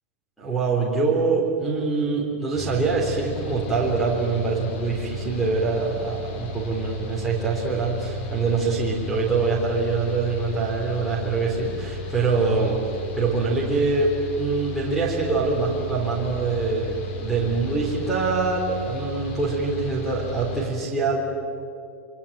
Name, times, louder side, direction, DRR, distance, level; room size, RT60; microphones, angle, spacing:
voice 1, 0.4-12.8 13.2-21.2, right 4 dB, ahead, -6 dB, 3.9 m, -24 dB
Mechanical fan, 2.5-20.7, left 1 dB, 50° left, 3.9 m, -35 dB
27.0 x 24.5 x 8.9 m, 2.5 s
supercardioid pair, 170°, 8 cm